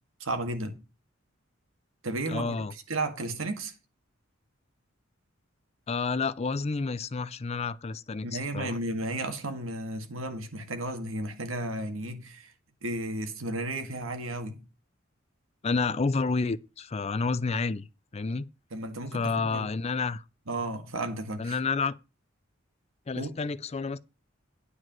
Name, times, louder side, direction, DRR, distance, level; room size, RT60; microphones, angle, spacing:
voice 1, 0.2-0.8 2.0-3.7 8.2-12.5 12.8-14.6 18.7-19.7 20.5-21.6 23.1-23.3, right 2 dB, 80° right, 1.9 m, -33 dB
voice 2, 2.3-2.7 5.9-8.8 15.6-17.9 18.1-18.5 19.1-20.2 21.4-22.0 23.1-24.0, left 4 dB, 30° left, 0.4 m, -30 dB
9.8 x 4.9 x 7.5 m
head